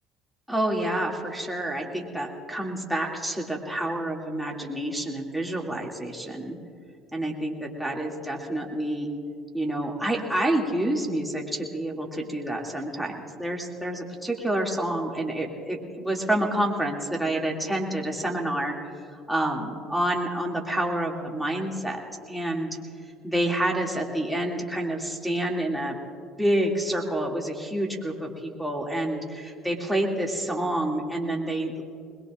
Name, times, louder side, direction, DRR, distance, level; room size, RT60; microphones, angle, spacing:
voice 1, 0.5-6.6 7.1-9.1 9.5-18.9 19.3-22.0 22.3-22.8 23.2-26.0 26.4-31.8, right 1 dB, 5° right, -1 dB, 2.6 m, -28 dB
22.0 x 21.0 x 2.5 m, 2.4 s
hypercardioid pair, 70°, 0 cm